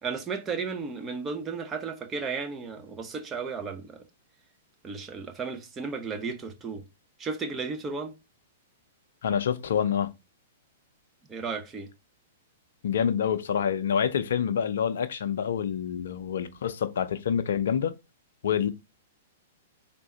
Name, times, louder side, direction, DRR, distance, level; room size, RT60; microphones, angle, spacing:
voice 1, 0.0-4.0 4.8-6.8 7.2-8.1 11.3-11.9, right 5 dB, 20° right, 0.8 m, -34 dB
voice 2, 9.2-10.1 12.8-17.9 18.4-18.7, left 8 dB, 65° left, 0.5 m, -27 dB
3.5 x 2.6 x 4.2 m
figure-of-eight pair, 110°, 0 cm